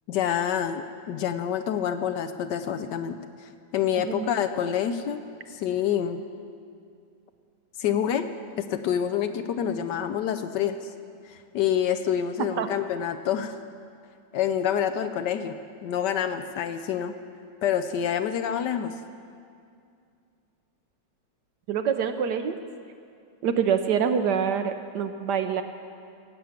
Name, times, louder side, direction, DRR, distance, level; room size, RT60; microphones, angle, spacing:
voice 1, 0.1-5.2 5.5-6.2 7.8-8.3 8.6-10.9 11.3-13.6 14.3-15.6 15.8-17.1 17.6-18.9, left 9 dB, 75° left, 8 dB, 1.1 m, -27 dB
voice 2, 4.0-4.3 12.6-12.7 21.7-22.6 23.4-25.6, right 7 dB, 70° right, 8 dB, 1.1 m, -25 dB
16.5 x 7.1 x 8.8 m, 2.4 s
omnidirectional pair, 2.1 m